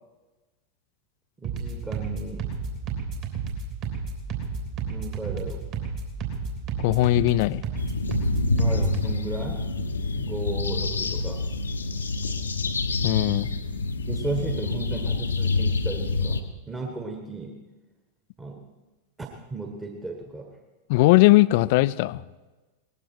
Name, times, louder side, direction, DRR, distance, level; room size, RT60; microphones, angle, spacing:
voice 1, 1.4-2.5 4.9-5.6 8.5-9.6 10.1-11.4 14.1-17.6 18.4-18.6 19.2-20.6, right 3 dB, 15° right, 2 dB, 1.5 m, -35 dB
sound 1, 1.4-9.1, right 5 dB, 40° right, 3.3 m, -32 dB
voice 2, 6.8-7.6 13.0-13.5 20.9-22.2, left 18 dB, 50° left, 18 dB, 0.4 m, -19 dB
sound 2, 7.8-16.4, left 3 dB, 75° left, 0.9 m, -27 dB
19.0 x 15.0 x 4.5 m, 1.2 s
figure-of-eight pair, 90°, 0 cm